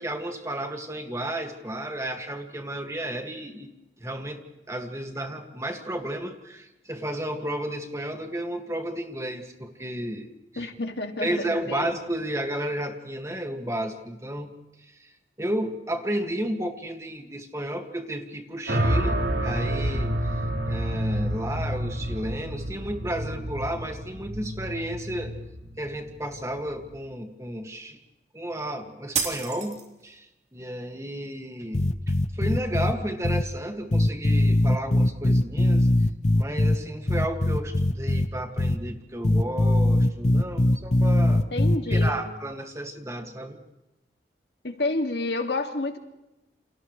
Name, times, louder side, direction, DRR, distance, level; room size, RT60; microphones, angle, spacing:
voice 1, 0.0-3.7 4.0-10.7 11.2-14.5 14.8-25.4 25.8-28.0 28.3-35.9 36.3-41.4 41.9-43.6, right 1 dB, 15° right, 4 dB, 2.0 m, -33 dB
voice 2, 10.6-12.0 41.5-42.3 44.6-46.0, left 2 dB, 75° left, 5 dB, 2.1 m, -30 dB
sound 1, 18.7-26.9, equal, 90° right, 4.6 m, -29 dB
sound 2, 29.1-30.2, right 6 dB, 40° right, 3.2 m, -30 dB
sound 3, 31.7-32.9 33.2-33.4 33.9-36.8 37.1-38.3 38.6-38.7 39.2-42.1, left 1 dB, 40° left, 0.8 m, -21 dB
29.5 x 28.0 x 3.2 m, 0.95 s
head